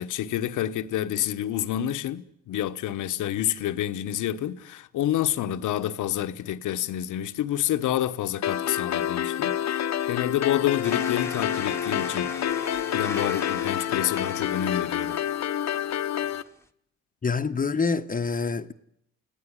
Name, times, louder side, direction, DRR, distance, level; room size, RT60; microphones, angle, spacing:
voice 1, 0.0-12.3 12.9-15.2, left 12 dB, 80° left, 1.2 m, -28 dB
sound 1, 8.4-16.4, left 10 dB, 60° left, 1.1 m, -28 dB
sound 2, 10.8-16.6, left 2 dB, 10° left, 1.6 m, -41 dB
voice 2, 17.2-18.7, left 4 dB, 30° left, 1.2 m, -26 dB
29.5 x 17.5 x 9.9 m
cardioid pair, 90°, 30 cm